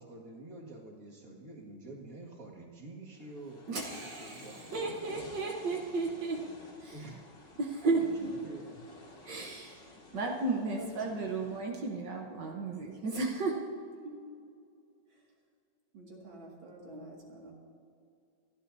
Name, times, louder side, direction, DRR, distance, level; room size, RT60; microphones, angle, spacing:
voice 1, 0.0-5.2 6.9-7.1 7.8-8.7, right 2 dB, 45° right, -3 dB, 2.5 m, -48 dB
sound 1, 3.2-11.6, left 2 dB, 70° left, 3.0 m, -53 dB
voice 2, 3.7-6.4 6.8-6.9 7.6-8.1 9.3-9.8 10.1-13.6 16.9-17.1, right 3 dB, 65° right, 0 dB, 1.8 m, -34 dB
voice 3, 8.0-8.8 10.6-11.8 14.0-14.2 15.1-15.3 15.9-17.5, right 2 dB, 85° right, -2 dB, 3.1 m, -50 dB
28.0 x 11.5 x 2.8 m, 2.4 s
omnidirectional pair, 2.1 m